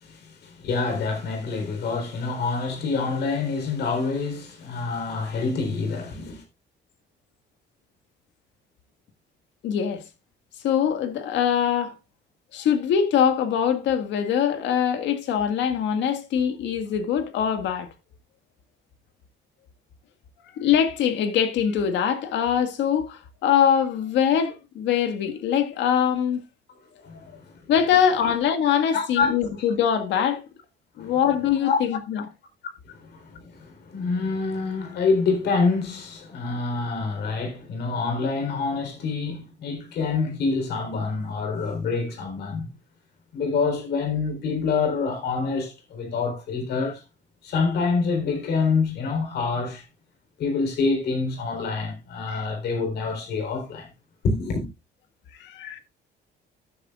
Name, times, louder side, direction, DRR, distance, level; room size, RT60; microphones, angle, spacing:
voice 1, 0.0-6.4 27.0-27.5 28.2-28.3 28.9-29.7 31.0-31.1 31.6-31.8 32.9-42.7 43.3-47.0 47.4-49.8 50.4-53.9 54.2-54.7, left 4 dB, 65° left, 3.9 m, -26 dB
voice 2, 9.6-10.0 10.6-11.9 12.5-17.9 20.6-26.4 27.7-30.4 31.0-32.2 52.3-52.4 55.4-55.8, left 8 dB, 85° left, 1.9 m, -23 dB
13.5 x 9.9 x 2.5 m
cardioid pair, 180°, 18 cm